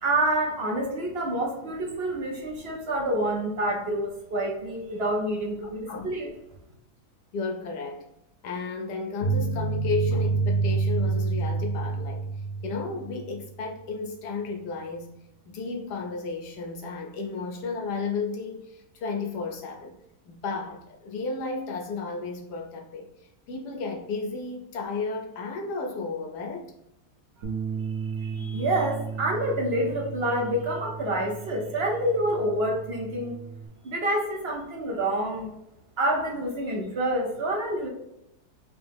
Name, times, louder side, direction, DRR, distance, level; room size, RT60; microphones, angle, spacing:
voice 1, 0.0-6.3 28.0-33.4 33.8-35.5 36.0-37.9, right 1 dB, 50° right, 0.8 m, -27 dB
voice 2, 7.3-8.0 8.4-12.3 12.6-15.1 15.5-20.0 20.3-26.7, left 4 dB, 80° left, 1.3 m, -33 dB
sound 1, 9.2-13.4, right 4 dB, 60° left, 1.4 m, -27 dB
Bass guitar, 27.4-33.7, right 6 dB, 70° right, 1.2 m, -36 dB
4.6 x 2.1 x 3.4 m
omnidirectional pair, 1.7 m